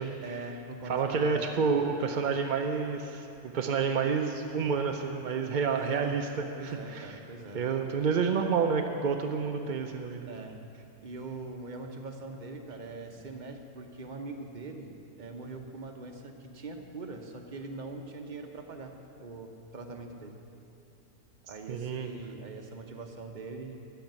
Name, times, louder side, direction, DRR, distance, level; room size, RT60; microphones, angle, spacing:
voice 1, 0.2-1.7 5.7-6.2 6.5-7.6 10.3-10.6 11.0-14.9 15.2-20.4 21.5-23.8, right 3 dB, 35° right, 3 dB, 0.9 m, -42 dB
voice 2, 0.8-3.3 3.5-7.2 7.5-10.3 21.7-22.1, right 5 dB, 60° right, 4 dB, 0.5 m, -29 dB
13.0 x 5.8 x 9.2 m, 2.8 s
omnidirectional pair, 1.5 m